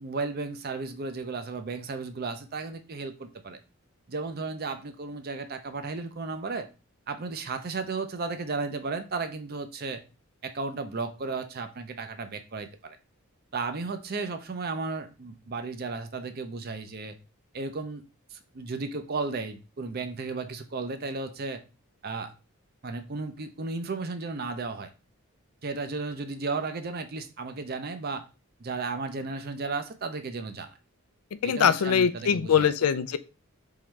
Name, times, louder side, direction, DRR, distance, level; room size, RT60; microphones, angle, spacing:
voice 1, 0.0-3.6 4.1-6.7 7.1-10.0 10.4-13.0 13.5-17.2 17.5-18.0 18.3-21.6 22.0-22.3 22.8-24.9 25.6-28.3 28.6-30.7 31.4-32.7, right 4 dB, 45° right, 0.5 m, -34 dB
voice 2, 31.4-33.2, left 7 dB, 85° left, 0.4 m, -22 dB
3.7 x 3.1 x 4.4 m
head